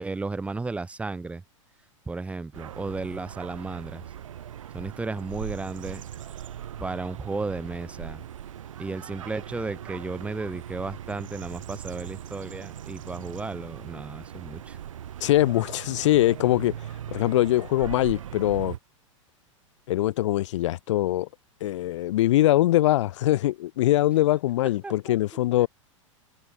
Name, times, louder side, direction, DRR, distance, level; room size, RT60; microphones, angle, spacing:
voice 1, 0.0-1.4 2.1-4.0 4.7-6.0 6.8-8.2 8.8-14.8 24.8-25.4, right 3 dB, 5° right, 0.6 m, -34 dB
sound 1, 2.5-18.8, right 10 dB, 70° right, 1.9 m, -40 dB
voice 2, 15.2-16.8 17.1-18.8 19.9-21.3 21.6-25.7, left 15 dB, 65° left, 0.7 m, -22 dB
open air
hypercardioid pair, 100°, 17 cm